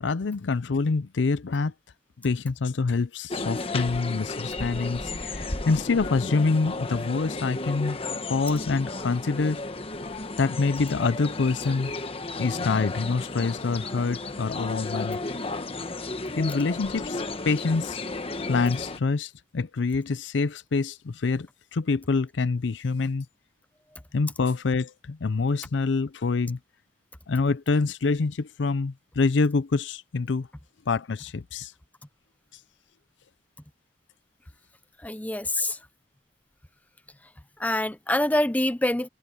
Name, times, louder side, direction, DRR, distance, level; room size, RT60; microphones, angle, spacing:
voice 1, 0.0-1.7 2.2-8.0 8.3-9.6 10.4-11.9 12.4-15.2 16.4-18.0 18.5-23.3 24.1-26.6 27.3-30.5 30.9-31.7, left 4 dB, 75° left, 0.5 m, -26 dB
sound 1, 3.3-19.0, left 3 dB, 30° left, 1.2 m, -33 dB
voice 2, 35.0-35.8 37.6-39.1, left 1 dB, 10° left, 0.7 m, -25 dB
head